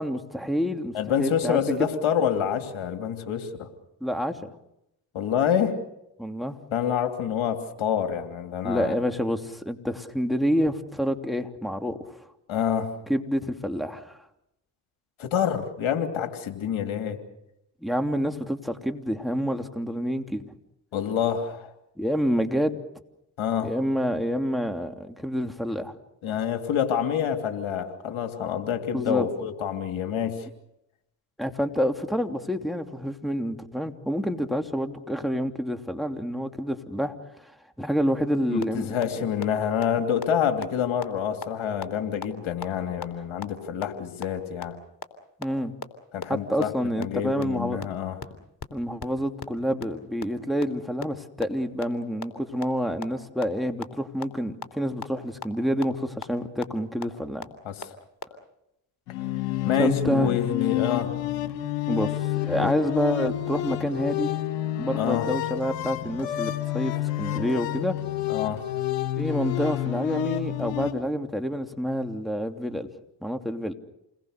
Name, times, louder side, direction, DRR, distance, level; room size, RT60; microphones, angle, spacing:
voice 1, 0.0-0.9 1.2-2.0 4.0-4.5 6.2-6.6 8.6-12.2 13.1-14.2 17.8-20.5 22.0-22.8 23.6-25.9 28.9-29.3 31.4-37.1 37.8-39.0 45.4-45.7 46.3-47.9 48.7-57.5 59.8-60.3 61.9-62.1 62.4-64.3 64.8-68.0 69.2-72.9 73.2-73.7, equal, ahead, 6 dB, 3.0 m, -28 dB
voice 2, 0.9-3.7 5.1-5.8 6.7-8.9 12.5-13.0 15.2-17.2 20.9-21.7 23.4-23.7 26.2-30.5 38.5-44.7 46.1-46.7 47.0-48.2 57.6-57.9 59.6-61.2 62.6-62.7 65.0-65.3 68.3-68.6, left 8 dB, 70° left, 5 dB, 3.0 m, -27 dB
sound 1, 38.6-38.7 39.0-39.1 39.4-39.5 39.8-39.9 40.2-40.3 40.6-40.7 41.0-41.1 41.4-41.5 41.8-41.9 42.2-42.3 42.6-42.7 43.0-43.1 43.4-43.5 43.8-43.9 44.2-44.3 44.6-44.7 45.0-45.1 45.4-45.5 45.8-45.9 46.2-46.3 46.6-46.7 47.0-47.1 47.4-47.5 47.8-47.9 48.2-48.3 48.6-48.7 49.0-49.1 49.4-49.5 49.8-49.9 50.2-50.3 50.6-50.7 51.0-51.1 51.4-51.5 51.8-51.9 52.2-52.3 52.6-52.7 53.0-53.1 53.4-53.5 53.8-53.9 54.2-54.3 54.6-54.7 55.0-55.1 55.4-55.5 55.8-55.9 56.2-56.3 56.6-56.7 57.0-57.1 57.4-57.5 57.8-57.9 58.2-58.3, left 6 dB, 50° left, 3.3 m, -33 dB
sound 2, 59.1-70.9, left 13 dB, 90° left, 1.7 m, -29 dB
28.5 x 21.0 x 6.7 m, 0.84 s
hypercardioid pair, 45°, 49 cm